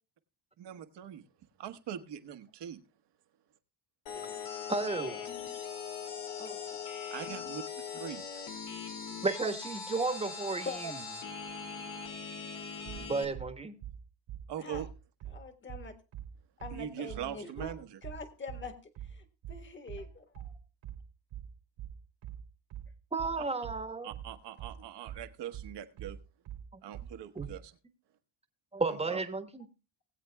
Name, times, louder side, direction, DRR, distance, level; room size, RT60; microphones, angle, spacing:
voice 1, 0.6-1.2 1.6-2.8 7.1-8.2 14.5-14.9 16.7-18.0 24.0-26.2 26.8-27.7 28.9-29.2, right 9 dB, 60° right, 1.3 m, -42 dB
sound 1, 4.1-13.2, left 6 dB, 85° left, 2.2 m, -41 dB
voice 2, 4.7-5.2 9.2-11.0 13.1-13.8 23.1-24.1 26.7-26.8 27.3-27.5 28.7-29.7, right 3 dB, 15° right, 1.3 m, -33 dB
sound 2, 12.8-27.6, right 10 dB, 85° right, 2.5 m, -44 dB
voice 3, 15.3-15.9 16.6-17.7 18.0-18.7 19.1-20.4, left 3 dB, 25° left, 1.6 m, -43 dB
20.0 x 8.0 x 2.3 m
cardioid pair, 105°, 46 cm